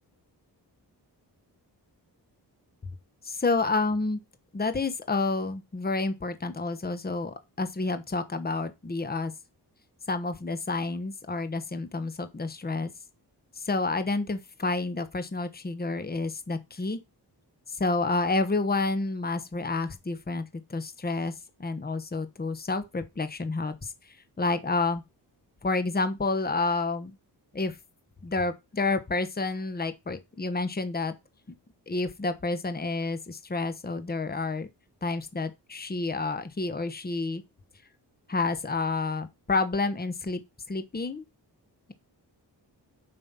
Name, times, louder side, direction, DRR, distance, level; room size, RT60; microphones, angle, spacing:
voice 1, 3.2-4.2 4.5-9.3 10.1-12.9 13.6-17.0 17.7-20.4 20.7-21.3 21.6-25.0 25.6-27.1 27.5-27.8 28.2-31.1 31.9-34.7 35.0-37.4 38.3-40.4 40.7-41.2, left 3 dB, 20° left, 1.1 m, -29 dB
7.4 x 5.4 x 5.6 m
wide cardioid pair, 105°, 42 cm